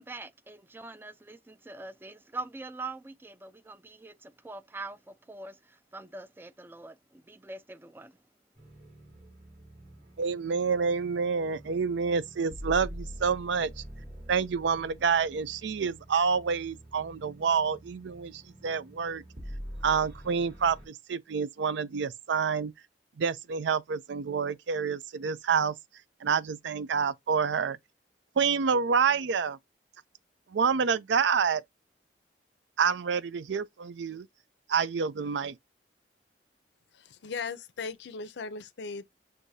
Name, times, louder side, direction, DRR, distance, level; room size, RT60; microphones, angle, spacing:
voice 1, 0.0-8.2, right 2 dB, 10° right, 0.3 m, -43 dB
sound 1, 8.5-20.9, equal, 60° right, 2.4 m, -46 dB
voice 2, 10.2-13.8 14.3-19.2 19.8-22.7 23.2-25.7 26.2-27.8 28.4-29.6 30.5-31.6 32.8-34.3 34.7-35.6, right 6 dB, 80° right, 0.4 m, -28 dB
voice 3, 36.9-39.0, left 4 dB, 70° left, 0.5 m, -38 dB
6.4 x 2.6 x 2.7 m
head